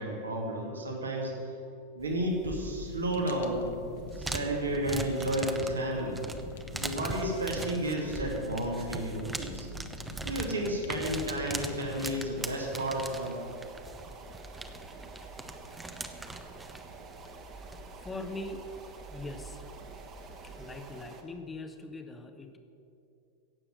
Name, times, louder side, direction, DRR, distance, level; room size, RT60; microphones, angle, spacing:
voice 1, 0.0-1.6 1.9-3.7 4.1-6.2 6.7-9.7 10.2-13.4, right 1 dB, 75° right, 0 dB, 2.5 m, -32 dB
sound 1, 2.0-21.1, right 2 dB, 10° right, 0.9 m, -42 dB
Fire, 2.6-12.4, left 5 dB, 60° left, 1.0 m, -47 dB
sound 2, 12.3-21.2, right 4 dB, 30° right, 1.6 m, -49 dB
voice 2, 18.0-18.6 19.1-19.6 20.4-22.6, left 2 dB, 15° left, 7 dB, 1.1 m, -41 dB
16.5 x 7.5 x 7.9 m, 2.7 s
figure-of-eight pair, 90°, 0 cm